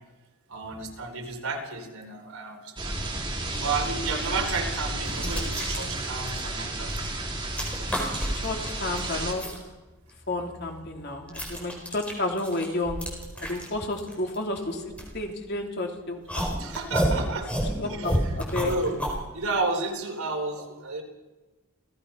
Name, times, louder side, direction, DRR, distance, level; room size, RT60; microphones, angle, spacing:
voice 1, 0.5-3.0 3.6-6.9 7.8-8.0 14.7-14.9 16.6-17.5 17.9-18.4 18.6-19.0 19.3-21.0, right 3 dB, 75° right, 4 dB, 3.9 m, -32 dB
sound 1, 2.8-9.3, right 2 dB, 20° right, 3.5 m, -32 dB
sound 2, 4.8-7.1 7.3-9.6 10.1-15.7 16.3-19.2, equal, 5° left, 4.6 m, -31 dB
voice 2, 8.4-9.4 10.3-13.0 13.4-14.8 15.1-16.5 17.8-18.7, left 2 dB, 50° left, 2 dB, 3.3 m, -31 dB
28.5 x 17.5 x 5.8 m, 1.2 s
head